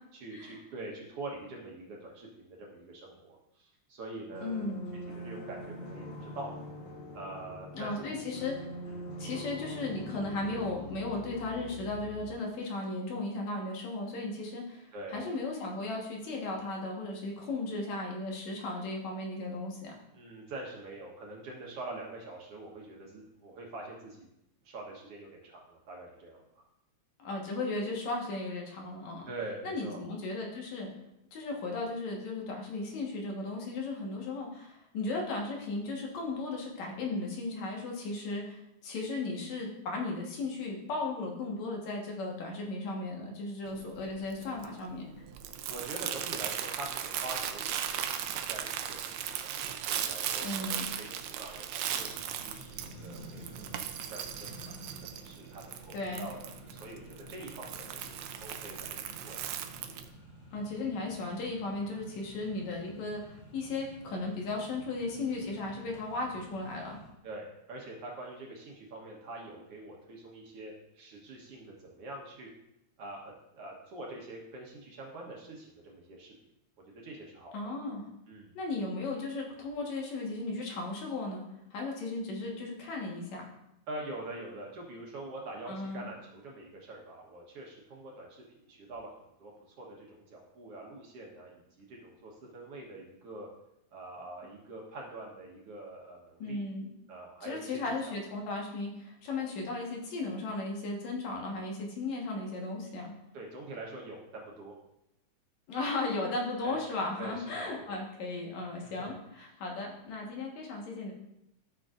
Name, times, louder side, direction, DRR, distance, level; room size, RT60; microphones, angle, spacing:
voice 1, 0.1-4.7 5.2-6.5 7.1-8.2 8.9-9.4 14.9-15.3 20.1-24.3 24.7-26.4 29.3-30.0 45.7-49.5 49.8-58.1 58.4-59.4 67.2-72.5 73.0-73.2 73.5-76.3 77.0-77.7 78.3-78.5 83.9-89.1 89.4-93.5 93.9-96.6 97.1-98.2 103.3-104.8 106.6-106.8 107.2-107.9 109.0-109.1, right 2 dB, 60° right, -1 dB, 1.9 m, -45 dB
sound 1, 4.3-12.3, left 1 dB, 50° left, 1.7 m, -44 dB
voice 2, 4.4-4.8 7.7-8.5 9.2-19.9 27.2-29.3 29.6-30.9 31.3-45.1 50.4-50.9 55.9-56.3 60.5-67.0 77.5-78.0 78.5-81.4 81.7-83.5 85.7-86.1 96.4-96.9 97.4-103.1 105.7-111.1, left 2 dB, 70° left, -1 dB, 2.6 m, -36 dB
Crumpling crinkling, 43.7-60.1, right 9 dB, 75° right, 1.8 m, -38 dB
Accelerating revving vroom, 52.1-67.1, equal, 30° left, 3.1 m, -51 dB
13.0 x 6.5 x 2.5 m, 0.85 s
omnidirectional pair, 3.4 m